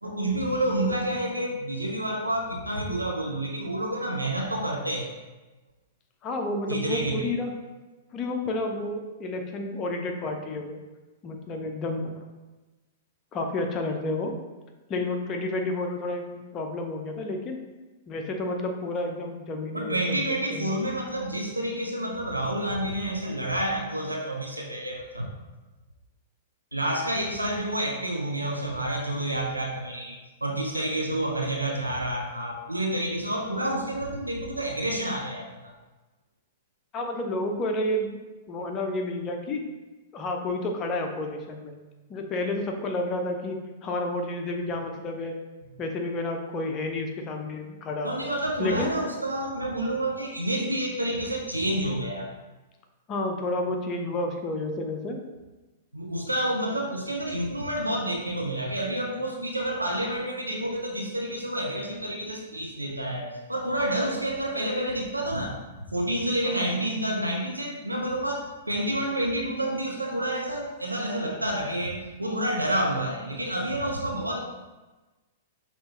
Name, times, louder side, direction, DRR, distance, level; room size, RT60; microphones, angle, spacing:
voice 1, 0.0-5.1 6.7-7.3 19.7-25.3 26.7-35.7 48.0-52.3 55.9-65.6 65.9-74.4, right 1 dB, 85° right, 1 dB, 0.5 m, -29 dB
voice 2, 6.2-7.5 8.1-10.8 11.2-12.2 13.3-14.3 14.9-17.6 18.1-20.2 20.5-20.7 36.9-38.2 38.5-39.6 40.1-41.7 42.1-45.3 45.8-48.1 48.6-48.9 53.1-55.2 66.4-66.7, left 2 dB, 25° left, 3 dB, 0.6 m, -30 dB
5.4 x 2.9 x 2.9 m, 1.2 s
figure-of-eight pair, 105°, 0 cm